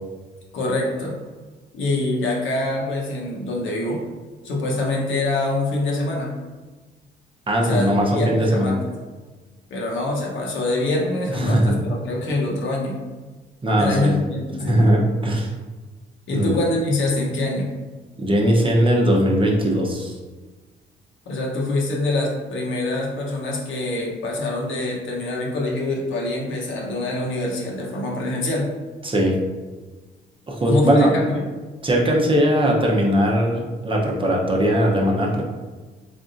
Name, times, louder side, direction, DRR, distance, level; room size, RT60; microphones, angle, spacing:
voice 1, 0.5-1.2 1.7-4.0 4.4-6.4 7.6-8.8 9.7-13.0 13.7-14.8 16.3-17.7 21.3-28.7 30.7-31.4, left 2 dB, 75° left, -2 dB, 1.0 m, -25 dB
voice 2, 7.5-8.7 11.4-11.8 13.6-14.1 14.6-15.5 16.3-16.5 18.2-20.2 29.0-29.4 30.5-31.1 31.8-35.4, equal, 25° right, -1 dB, 0.7 m, -19 dB
3.6 x 3.5 x 2.6 m, 1.3 s
cardioid pair, 90°, 20 cm